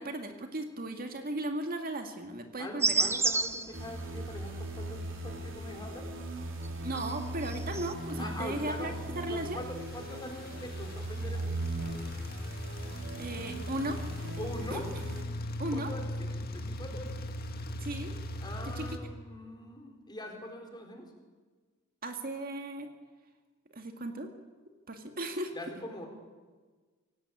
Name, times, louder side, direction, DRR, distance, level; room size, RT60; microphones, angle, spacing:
voice 1, 0.0-3.1 6.8-9.6 13.2-14.0 14.7-14.8 15.6-15.9 17.8-18.1 18.8-18.9 22.0-22.9 23.7-24.3 24.9-25.5, right 1 dB, 45° right, 5 dB, 2.1 m, -36 dB
voice 2, 2.6-6.1 8.2-9.0 9.3-11.6 14.4-14.9 15.7-17.1 18.4-21.1 25.5-26.1, left 1 dB, 20° left, 3 dB, 4.4 m, -43 dB
sound 1, 2.8-6.0 6.3-7.9, right 3 dB, 10° right, 0.8 m, -31 dB
sound 2, 3.7-15.2, right 1 dB, 65° right, 3.9 m, -39 dB
sound 3, 7.0-19.0, left 1 dB, 50° left, 1.9 m, -40 dB
26.0 x 17.5 x 8.6 m, 1.4 s
head